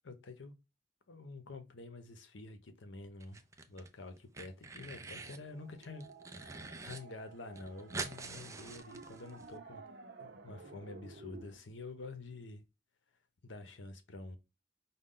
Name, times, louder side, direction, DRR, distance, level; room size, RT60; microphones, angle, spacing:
voice 1, 0.0-0.5 1.1-6.1 6.3-9.8 10.2-12.6 13.4-14.4, left 3 dB, 90° left, 0.8 m, -48 dB
sound 1, 3.2-3.9 4.2-5.4 5.8-7.0 7.3-7.4 7.6-9.5, right 3 dB, 15° right, 0.4 m, -45 dB
sound 2, 5.0-11.6, right 3 dB, 65° right, 0.8 m, -54 dB
5.2 x 2.3 x 3.8 m
head